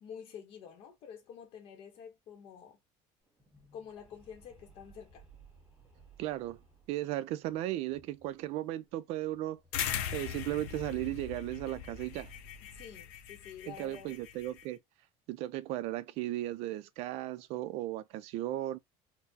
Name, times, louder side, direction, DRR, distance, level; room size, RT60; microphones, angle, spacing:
voice 1, 0.0-2.8 3.7-5.2 12.7-14.2, left 7 dB, 45° left, 0.7 m, -49 dB
sound 1, 3.3-8.6 8.8-8.9 9.2-13.5, right 3 dB, 5° right, 0.9 m, -58 dB
voice 2, 6.2-6.6 6.9-9.6 10.1-12.3 13.7-14.8 15.3-18.8, right 15 dB, 55° right, 0.4 m, -36 dB
sound 2, 9.7-14.6, left 9 dB, 75° left, 0.6 m, -40 dB
4.2 x 2.0 x 2.7 m
cardioid pair, 175°, 13 cm